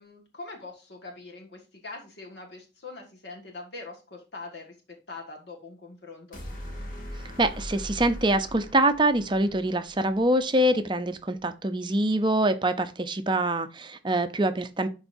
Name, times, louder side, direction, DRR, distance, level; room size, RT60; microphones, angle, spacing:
voice 1, 0.0-4.7 5.1-6.4, left 3 dB, 65° left, 1 dB, 1.7 m, -43 dB
sound 1, 6.3-10.6, equal, 45° left, 2.5 m, -40 dB
voice 2, 7.4-14.9, right 1 dB, 25° right, 10 dB, 0.6 m, -24 dB
11.5 x 3.9 x 2.7 m, 0.31 s
head